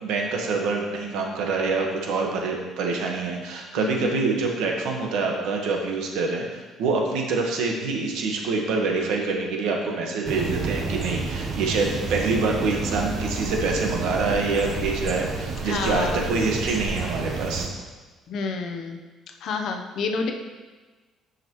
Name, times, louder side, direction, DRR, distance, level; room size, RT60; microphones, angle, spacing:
voice 1, 0.0-17.7, right 3 dB, 80° right, 1 dB, 1.3 m, -26 dB
voice 2, 3.8-4.2 15.6-16.3 18.3-19.0 19.4-20.3, left 4 dB, 50° left, 4 dB, 0.8 m, -29 dB
sound 1, 10.2-17.7, right 4 dB, 40° right, 0.8 m, -30 dB
10.5 x 5.8 x 3.1 m, 1.3 s
cardioid pair, 170°, 0 cm